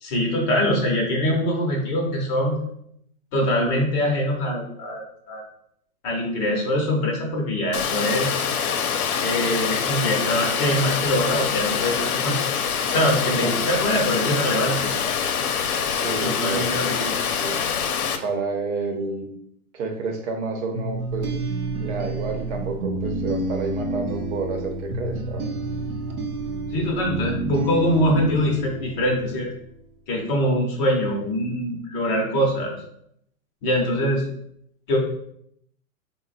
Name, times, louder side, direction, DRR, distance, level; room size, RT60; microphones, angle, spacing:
voice 1, 0.0-2.6 3.3-5.4 6.0-8.4 9.2-12.4 12.9-15.1 16.2-17.2 26.7-29.5 30.1-32.7 33.6-34.2 34.9-35.0, equal, 20° left, -1 dB, 0.6 m, -23 dB
Water, 7.7-18.2, left 7 dB, 85° left, 0.6 m, -25 dB
voice 2, 13.4-13.8 15.9-17.6 18.2-19.3 19.7-21.4 21.8-25.4, right 4 dB, 50° right, 3 dB, 0.9 m, -30 dB
sound 1, 20.7-29.5, right 2 dB, 90° right, 0.9 m, -29 dB
4.1 x 2.1 x 4.0 m, 0.72 s
hypercardioid pair, 150°, 43 cm